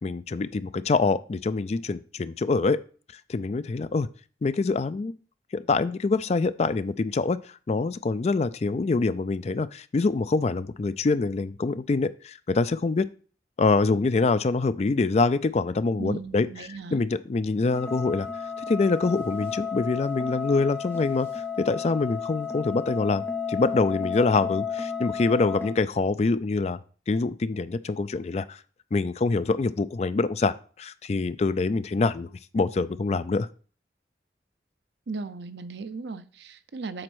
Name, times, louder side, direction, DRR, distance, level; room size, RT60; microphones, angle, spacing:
voice 1, 0.0-2.8 3.3-4.1 4.4-5.1 5.5-7.4 7.7-13.1 13.6-18.3 18.7-21.3 21.6-23.2 23.5-26.8 27.1-28.6 28.9-32.3 32.5-33.5, left 3 dB, 35° left, 14 dB, 0.4 m, -25 dB
voice 2, 16.0-17.0 35.1-37.0, right 3 dB, 75° right, 12 dB, 0.6 m, -36 dB
sound 1, 17.7-25.7, left 6 dB, 15° left, 1.2 m, -33 dB
7.7 x 4.2 x 6.1 m, 0.41 s
head